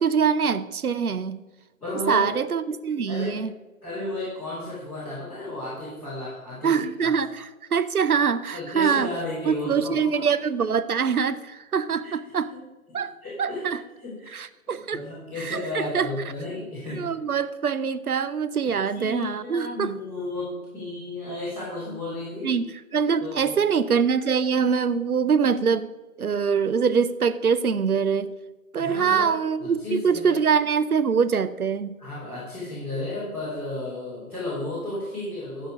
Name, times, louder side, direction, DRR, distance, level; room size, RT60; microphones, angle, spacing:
voice 1, 0.0-1.4 2.1-3.5 6.6-9.1 9.5-12.5 12.9-13.1 13.4-13.8 14.3-15.0 15.4-16.1 17.0-19.9 22.4-25.9 26.2-28.3 28.7-32.0, right 6 dB, 85° right, 12 dB, 0.7 m, -24 dB
voice 2, 1.8-2.3 3.1-3.4 3.8-7.1 8.5-10.3 12.0-12.1 12.9-17.1 18.6-22.6 23.2-23.6 28.8-29.3 29.6-30.4 32.0-35.7, left 2 dB, 5° left, -15 dB, 3.6 m, -33 dB
12.5 x 4.4 x 6.3 m, 1.1 s
figure-of-eight pair, 145°, 43 cm